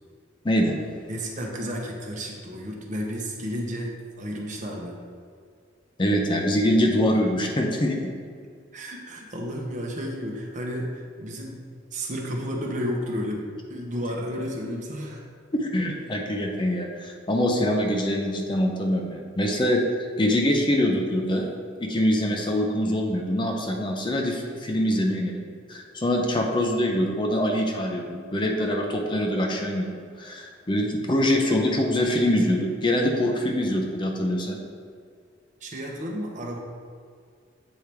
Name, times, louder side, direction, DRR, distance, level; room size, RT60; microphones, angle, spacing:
voice 1, 0.4-0.8 6.0-8.0 15.5-19.8 20.2-21.5 21.8-34.6, left 1 dB, 25° left, 2 dB, 0.6 m, -24 dB
voice 2, 1.1-5.0 8.7-11.6 11.9-15.3 35.6-36.6, equal, 40° right, 0 dB, 0.9 m, -32 dB
8.2 x 4.5 x 3.4 m, 2.1 s
head